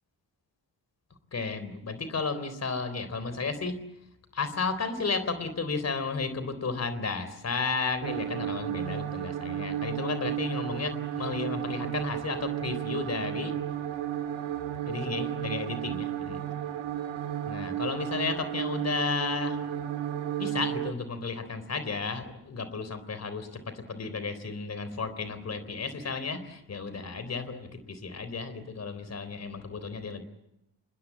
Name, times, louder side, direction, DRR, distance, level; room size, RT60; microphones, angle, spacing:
voice 1, 1.3-3.8 4.3-13.6 14.9-16.4 17.5-19.6 20.4-30.2, left 4 dB, 35° left, 12 dB, 3.8 m, -33 dB
sound 1, 8.0-20.9, right 10 dB, 80° right, 2.1 m, -33 dB
26.5 x 22.5 x 8.4 m, 0.84 s
wide cardioid pair, 175°, 45 cm